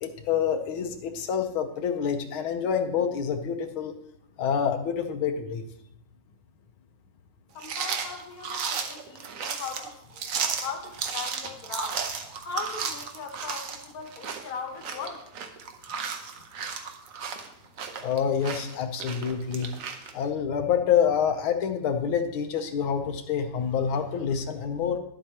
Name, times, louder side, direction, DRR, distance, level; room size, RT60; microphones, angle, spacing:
voice 1, 0.0-3.9 4.4-5.7 18.0-19.7 20.1-25.0, left 7 dB, 85° left, 6 dB, 1.6 m, -27 dB
voice 2, 7.5-12.0 12.4-15.3, left 5 dB, 55° left, 4 dB, 1.4 m, -39 dB
sound 1, 7.6-20.1, right 6 dB, 60° right, 0.9 m, -34 dB
10.5 x 7.7 x 2.9 m, 0.78 s
omnidirectional pair, 2.2 m